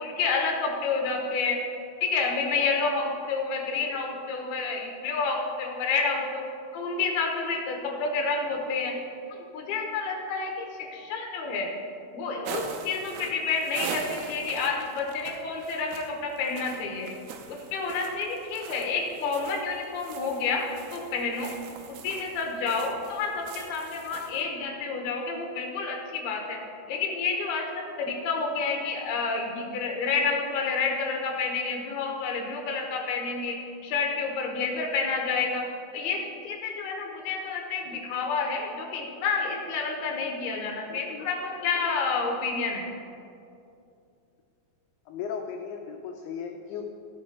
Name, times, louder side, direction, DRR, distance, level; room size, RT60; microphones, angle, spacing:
voice 1, 0.0-1.6 2.0-6.4 6.7-9.0 9.5-11.7 12.1-17.1 17.5-20.6 20.9-21.5 21.9-26.6 26.9-33.6 33.8-35.6 35.9-42.9, left 4 dB, 70° left, 1 dB, 2.8 m, -29 dB
voice 2, 3.7-4.0 8.4-9.0 19.2-19.6 23.9-24.0 37.9-38.0 40.9-41.7 45.1-46.9, left 7 dB, 90° left, 3 dB, 2.2 m, -39 dB
sound 1, 12.4-24.4, right 5 dB, 80° right, 2.4 m, -41 dB
16.5 x 6.1 x 4.4 m, 2.6 s
omnidirectional pair, 5.3 m